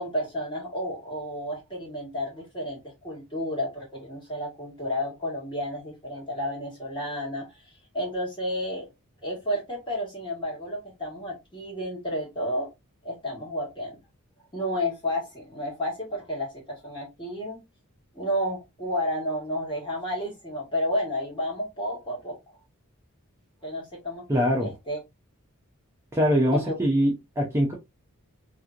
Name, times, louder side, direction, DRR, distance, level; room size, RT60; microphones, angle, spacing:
voice 1, 0.0-7.5 7.9-8.9 9.2-12.7 13.0-14.0 14.5-17.6 18.1-22.4 23.6-24.2 24.6-25.0 26.5-26.7, equal, 20° left, 1.4 m, -31 dB
voice 2, 24.3-24.7 26.1-27.7, equal, 10° right, 0.6 m, -23 dB
3.0 x 2.6 x 2.4 m
head